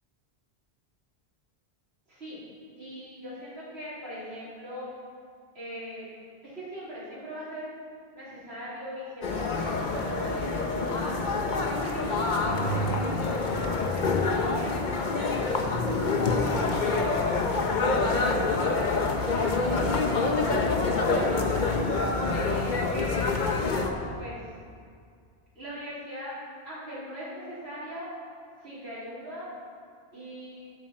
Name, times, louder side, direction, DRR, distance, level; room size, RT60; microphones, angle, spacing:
voice 1, 2.7-4.9 5.5-6.1 6.4-7.7 8.1-11.2 11.8-15.4 16.3-17.3 17.9-21.8 22.3-23.3 24.2-24.4 25.6-26.3 26.6-28.1 28.6-29.5 30.1-30.7, equal, 75° right, -12 dB, 3.7 m, -40 dB
sound 1, 9.2-23.9, left 3 dB, 50° left, 1.0 m, -26 dB
12.5 x 8.4 x 4.3 m, 2.2 s
omnidirectional pair, 1.1 m